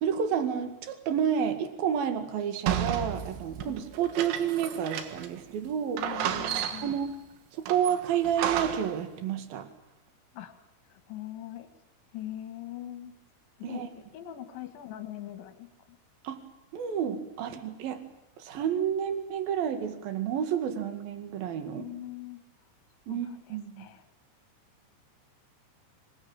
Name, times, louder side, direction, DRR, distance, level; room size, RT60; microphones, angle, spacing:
voice 1, 0.0-6.0 6.8-7.1 7.5-9.7 13.6-13.9 16.2-16.4 16.7-18.0 18.4-21.9 23.1-23.8, right 8 dB, 55° right, 8 dB, 3.5 m, -30 dB
sound 1, 2.7-5.4 5.7-5.8 6.0-7.1 7.7-9.0, right 9 dB, 80° right, 4.1 m, -32 dB
voice 2, 6.0-7.0 10.3-10.5 10.9-11.7 12.1-13.1 13.6-13.8 14.1-16.0 21.7-22.4 23.1-24.0, left 13 dB, 70° left, 8 dB, 4.1 m, -42 dB
26.0 x 20.5 x 9.0 m, 0.84 s
omnidirectional pair, 5.6 m